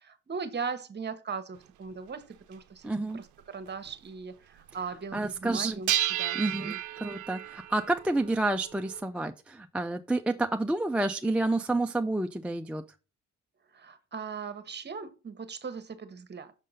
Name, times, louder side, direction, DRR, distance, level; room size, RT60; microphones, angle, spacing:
voice 1, 0.0-6.8 13.7-16.5, right 5 dB, 35° right, 1.1 m, -39 dB
sound 1, 1.5-1.6 2.5-2.6 3.1-3.2 3.7-3.9 5.9-9.0, right 13 dB, 75° right, 0.5 m, -32 dB
voice 2, 2.8-3.2 5.1-5.8 6.3-12.8, right 2 dB, 5° right, 0.3 m, -29 dB
6.4 x 3.7 x 5.5 m
cardioid pair, 90°, 30 cm